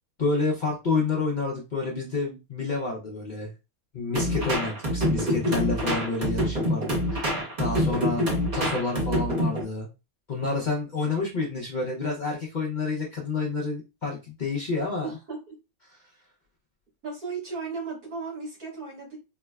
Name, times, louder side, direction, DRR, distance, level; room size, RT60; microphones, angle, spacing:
voice 1, 0.2-3.5 3.9-8.2 8.5-9.9 10.3-15.1, left 3 dB, 45° left, -3 dB, 0.6 m, -29 dB
sound 1, 4.1-9.6, equal, 35° right, 0.9 m, -26 dB
voice 2, 15.0-15.4 17.0-19.2, right 4 dB, 80° right, -3 dB, 2.2 m, -35 dB
4.6 x 2.1 x 2.3 m, 0.27 s
omnidirectional pair, 1.6 m